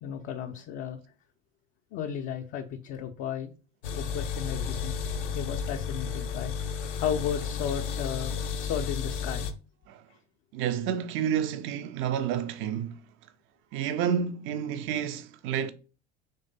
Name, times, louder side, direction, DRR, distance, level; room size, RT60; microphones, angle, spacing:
voice 1, 0.0-1.0 1.9-3.5 3.9-5.0 5.3-6.5 6.8-9.5, left 9 dB, 35° left, 0.4 m, -34 dB
sound 1, 3.8-9.5, left 6 dB, 70° left, 0.7 m, -32 dB
voice 2, 10.5-13.0 13.7-15.7, right 8 dB, 35° right, 0.5 m, -30 dB
3.8 x 3.1 x 4.0 m
figure-of-eight pair, 70°, 37 cm